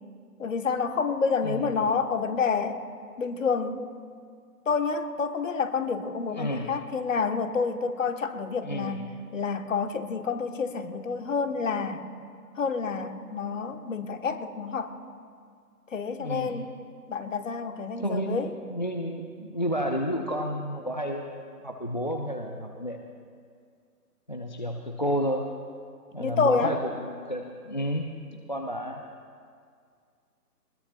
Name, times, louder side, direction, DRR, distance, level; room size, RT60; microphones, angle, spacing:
voice 1, 0.4-2.8 3.2-3.9 4.7-9.0 9.3-12.1 12.5-14.9 15.9-16.7 17.1-18.5 26.2-26.8, left 5 dB, 55° left, 7 dB, 1.1 m, -28 dB
voice 2, 6.3-6.7 8.6-9.0 16.2-16.6 18.0-18.4 18.7-23.0 24.3-25.5 26.1-29.0, equal, 30° left, 2 dB, 0.4 m, -31 dB
22.5 x 20.0 x 2.2 m, 2.1 s
figure-of-eight pair, 150°, 48 cm